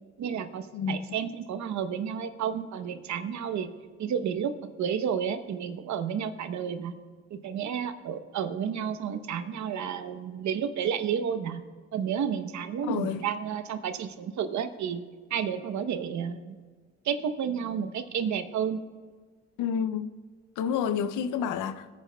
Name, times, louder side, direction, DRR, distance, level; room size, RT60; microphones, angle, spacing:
voice 1, 0.2-3.7 4.0-7.0 7.3-11.6 11.9-15.0 15.3-16.6 17.0-18.8, right 7 dB, 70° right, 0.9 m, -31 dB
voice 2, 12.8-13.2 19.6-20.1 20.6-22.0, left 7 dB, 85° left, 0.6 m, -29 dB
21.5 x 9.4 x 2.3 m
cardioid pair, 90°, 30 cm